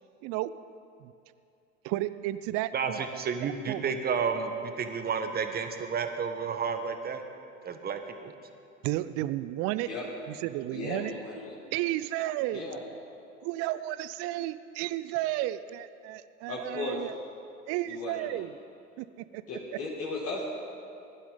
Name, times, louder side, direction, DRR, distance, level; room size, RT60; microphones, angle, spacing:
voice 1, 0.2-0.5 1.0-1.1 1.8-4.0 8.8-9.9 10.3-11.2 11.7-12.7 13.4-17.1 17.7-18.6 19.0-19.4 19.7-19.8, right 15 dB, 40° right, 15 dB, 0.5 m, -33 dB
voice 2, 2.7-7.2 7.6-8.3, right 6 dB, 25° right, 7 dB, 1.2 m, -31 dB
voice 3, 10.7-11.5 12.5-12.8 16.5-17.0 17.9-18.4 19.5-20.5, left 3 dB, 40° left, -5 dB, 2.4 m, -36 dB
20.5 x 11.5 x 3.9 m, 2.6 s
figure-of-eight pair, 75°, 38 cm